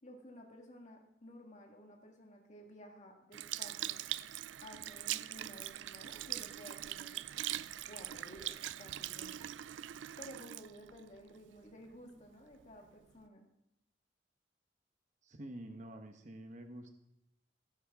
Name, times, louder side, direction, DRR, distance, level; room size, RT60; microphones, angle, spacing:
voice 1, 0.0-4.0 4.6-7.2 7.8-9.5 10.2-13.5, equal, 40° left, 1 dB, 1.7 m, -54 dB
Sink (filling or washing) / Liquid, 3.3-11.9 12.5-12.6, right 13 dB, 85° right, 0.4 m, -42 dB
voice 2, 15.2-16.9, right 1 dB, 45° right, 5 dB, 1.0 m, -48 dB
16.5 x 11.0 x 3.6 m, 0.81 s
head